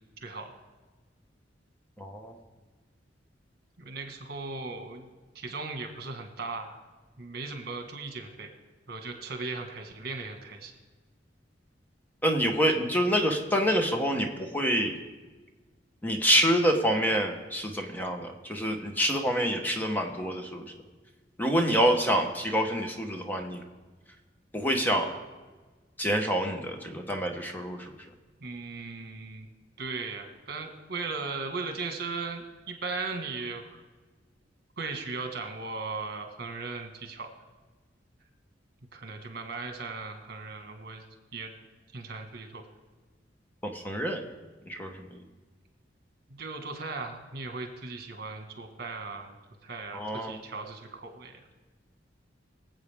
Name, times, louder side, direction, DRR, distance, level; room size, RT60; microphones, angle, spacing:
voice 1, 0.2-0.5 3.8-5.1 5.3-6.8 7.2-8.5 8.9-10.7 28.4-29.5 29.8-33.8 34.8-37.3 38.9-41.0 41.3-41.5 41.9-42.7 46.3-49.3 49.6-51.4, right 3 dB, 55° right, 4 dB, 1.6 m, -37 dB
voice 2, 2.0-2.3 12.2-15.0 16.0-20.7 21.4-23.6 24.5-25.1 26.0-28.1 43.6-44.2 44.7-45.1 49.9-50.4, equal, 10° left, 3 dB, 1.0 m, -27 dB
23.5 x 8.0 x 3.5 m, 1.3 s
head